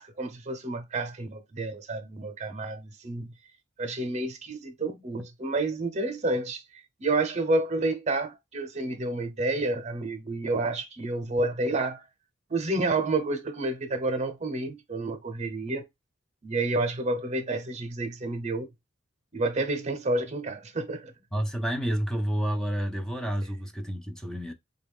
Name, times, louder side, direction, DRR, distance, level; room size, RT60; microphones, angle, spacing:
voice 1, 0.0-3.3 3.8-6.6 7.0-12.0 12.5-15.8 16.4-18.7 19.3-21.1, right 2 dB, 35° right, 0.7 m, -29 dB
voice 2, 21.3-24.5, equal, 5° left, 0.4 m, -29 dB
3.9 x 2.3 x 3.4 m
head